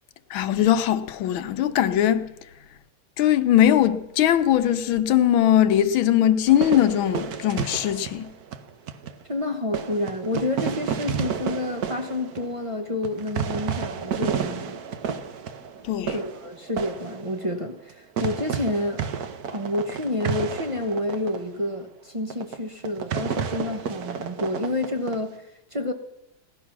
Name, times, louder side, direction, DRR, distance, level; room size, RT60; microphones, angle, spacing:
voice 1, 0.3-2.3 3.2-8.3 15.8-16.1, left 11 dB, 75° left, 1.6 m, -20 dB
sound 1, 6.5-9.2 9.7-17.9 18.2-21.4 21.8-21.9 22.3-22.6 22.8-25.2, right 7 dB, 55° right, 1.2 m, -31 dB
voice 2, 9.3-14.8 16.1-19.0 19.5-25.9, left 1 dB, 40° right, 0.4 m, -29 dB
17.5 x 12.0 x 6.0 m
omnidirectional pair, 2.3 m